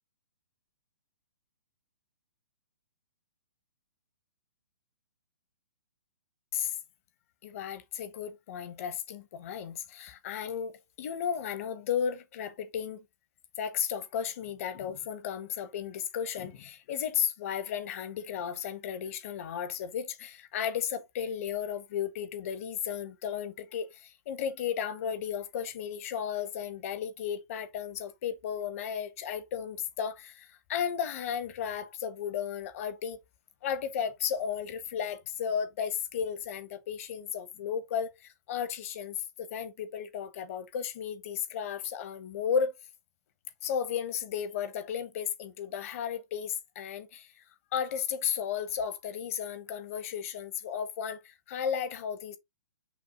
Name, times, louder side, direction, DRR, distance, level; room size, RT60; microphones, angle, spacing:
voice 1, 7.4-13.0 13.6-33.2 33.6-42.7 43.6-47.3 47.7-52.4, left 8 dB, 50° left, 0.9 m, -34 dB
6.0 x 2.1 x 4.2 m
hypercardioid pair, 135°, 10 cm